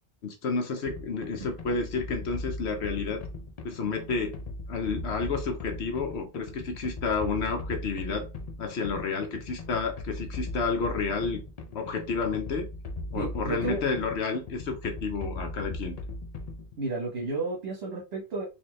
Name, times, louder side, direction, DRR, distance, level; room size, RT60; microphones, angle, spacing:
voice 1, 0.2-3.2 3.6-4.4 4.7-8.3 8.6-11.4 11.7-12.7 13.1-16.0, left 4 dB, 75° left, 5 dB, 1.0 m, -30 dB
sound 1, 0.9-16.8, left 2 dB, 50° left, 0.5 m, -39 dB
voice 2, 13.1-13.8 16.8-18.4, right 3 dB, 70° right, -3 dB, 1.4 m, -32 dB
4.2 x 2.6 x 3.1 m, 0.29 s
omnidirectional pair, 1.1 m